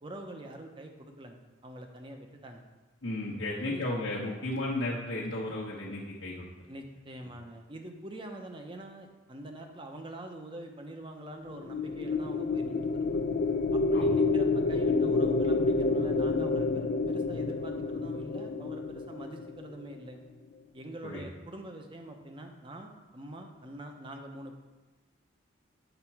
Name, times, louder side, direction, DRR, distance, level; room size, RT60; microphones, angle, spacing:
voice 1, 0.0-2.6 3.6-3.8 6.7-13.2 13.7-20.2 20.7-24.6, right 1 dB, 25° right, 4 dB, 0.7 m, -45 dB
voice 2, 3.0-6.5 13.9-14.1 21.0-21.2, left 1 dB, 75° left, -6 dB, 1.0 m, -34 dB
sound 1, 11.5-19.9, left 3 dB, 50° left, 0.4 m, -28 dB
8.0 x 4.4 x 5.8 m, 1.2 s
head